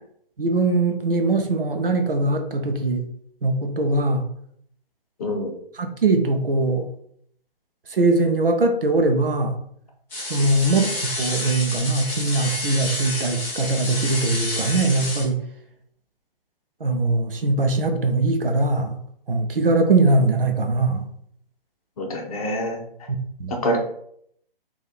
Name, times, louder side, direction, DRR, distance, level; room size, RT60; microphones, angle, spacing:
voice 1, 0.4-3.1 3.4-4.2 5.7-6.9 7.9-9.6 10.3-15.4 16.8-19.0 19.3-21.0 23.1-23.6, right 2 dB, 70° right, 6 dB, 0.7 m, -21 dB
voice 2, 5.2-5.5 22.0-22.8 23.5-23.8, equal, 40° left, 0 dB, 1.0 m, -25 dB
sound 1, 10.1-15.2, left 1 dB, 5° left, 0.6 m, -29 dB
3.4 x 2.6 x 4.1 m, 0.69 s
figure-of-eight pair, 135°, 29 cm